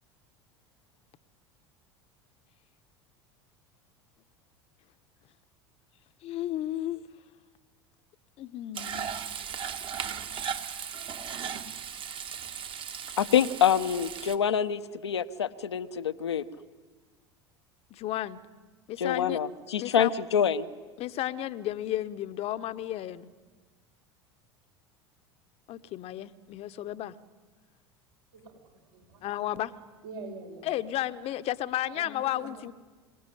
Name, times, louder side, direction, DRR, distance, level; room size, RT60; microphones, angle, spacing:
voice 1, 6.2-7.0 8.4-9.1 17.9-18.4 18.9-19.4 19.8-20.1 21.0-23.3 25.7-27.1 29.2-29.7 30.6-32.7, left 13 dB, 45° left, 12 dB, 1.1 m, -33 dB
Frying (food), 8.7-14.4, right 7 dB, 40° right, 1.9 m, -37 dB
voice 2, 13.2-16.4 19.0-20.7, left 8 dB, 80° left, 10 dB, 1.1 m, -26 dB
voice 3, 28.3-29.3 30.0-30.7 31.9-32.7, right 3 dB, 70° right, 1 dB, 7.4 m, -45 dB
26.0 x 18.0 x 10.0 m, 1.3 s
figure-of-eight pair, 75°, 14 cm